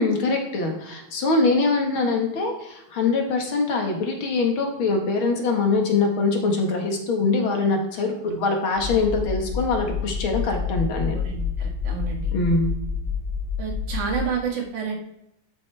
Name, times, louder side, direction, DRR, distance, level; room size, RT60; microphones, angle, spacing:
voice 1, 0.0-11.2 12.3-12.7, left 3 dB, 50° left, 2 dB, 2.2 m, -23 dB
sound 1, 8.8-14.2, left 6 dB, 20° left, 2.0 m, -28 dB
voice 2, 11.1-12.3 13.6-15.0, right 6 dB, 80° right, 0 dB, 3.5 m, -30 dB
12.5 x 9.3 x 3.5 m, 0.83 s
omnidirectional pair, 3.4 m